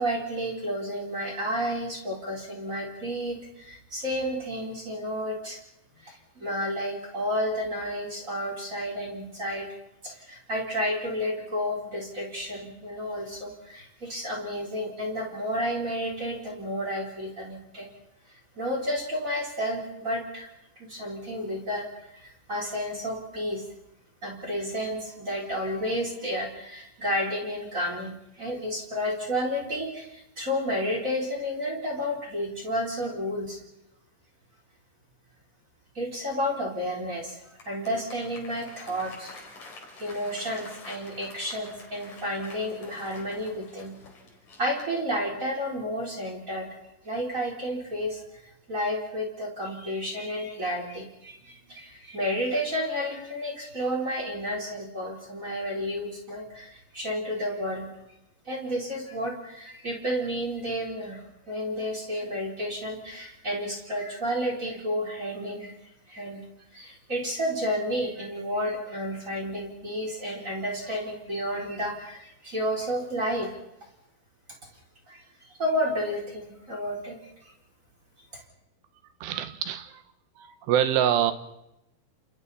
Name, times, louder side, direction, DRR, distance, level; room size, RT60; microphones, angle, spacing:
voice 1, 0.0-5.6 6.0-9.7 10.0-17.9 18.6-23.6 24.2-33.6 35.9-39.3 40.0-43.9 44.6-46.7 47.0-48.2 48.7-57.9 58.4-65.7 66.1-66.4 66.7-73.5 75.1-77.3 78.3-78.4, equal, 20° right, -1 dB, 4.0 m, -31 dB
Applause, 37.3-45.4, left 3 dB, 45° left, 5.3 m, -48 dB
voice 2, 79.2-80.0 80.4-81.3, right 10 dB, 80° right, 10 dB, 3.4 m, -25 dB
29.0 x 28.0 x 4.2 m, 0.85 s
omnidirectional pair, 4.9 m